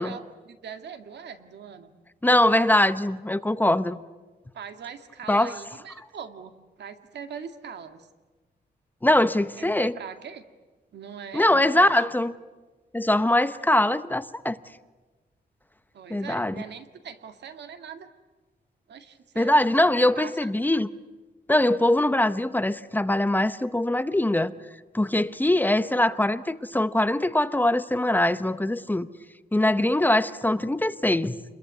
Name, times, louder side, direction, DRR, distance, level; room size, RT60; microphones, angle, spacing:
voice 1, 0.0-1.9 4.5-6.5 6.8-8.1 9.6-10.4 10.9-12.0 15.9-18.1 18.9-19.8 20.2-20.5, right 7 dB, 85° right, 2.1 m, -41 dB
voice 2, 2.2-4.0 5.3-5.6 9.0-9.9 11.3-12.3 12.9-14.6 16.1-16.5 19.4-20.9 21.5-24.5 24.9-29.1 29.5-31.4, left 1 dB, 10° left, 0.8 m, -22 dB
29.0 x 22.0 x 9.5 m
wide cardioid pair, 130°, 17 cm